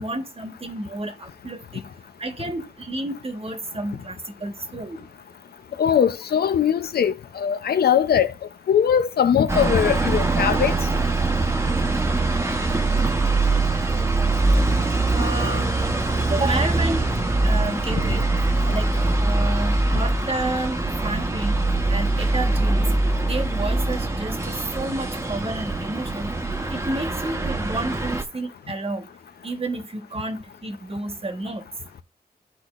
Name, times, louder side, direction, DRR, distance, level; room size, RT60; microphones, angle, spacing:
voice 1, 0.0-1.9 2.2-5.0 15.1-15.7 16.3-17.0 17.4-18.3 18.7-18.9 19.2-21.6 21.9-22.9 23.2-26.3 26.7-29.1 29.4-31.6, right 2 dB, 35° right, 1.3 m, -30 dB
voice 2, 5.8-8.3 8.7-10.7, left 8 dB, 85° left, 0.6 m, -20 dB
sound 1, 9.5-28.2, right 2 dB, 15° right, 1.0 m, -23 dB
12.0 x 4.1 x 2.4 m
cardioid pair, 55°, 16 cm